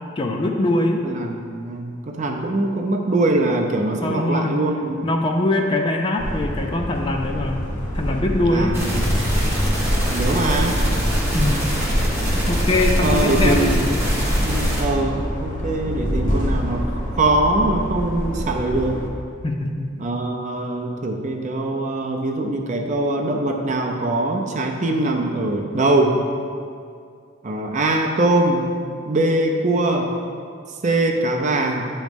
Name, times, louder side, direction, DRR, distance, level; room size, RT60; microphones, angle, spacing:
voice 1, 0.2-1.1 4.0-4.5 5.0-8.8 9.1-9.4 11.3-11.7 12.2-13.7 19.4-20.0, left 1 dB, 25° left, 3 dB, 0.4 m, -23 dB
voice 2, 1.0-5.2 8.5-9.2 10.1-10.8 13.0-13.9 14.4-19.0 20.0-26.2 27.4-28.8 29.1-30.1 30.8-31.9, right 2 dB, 35° right, 2 dB, 0.5 m, -22 dB
sound 1, 6.2-19.1, equal, 40° left, 0.8 m, -27 dB
sound 2, 8.7-14.8, equal, 10° right, 1.1 m, -22 dB
8.0 x 3.1 x 5.2 m, 2.3 s
head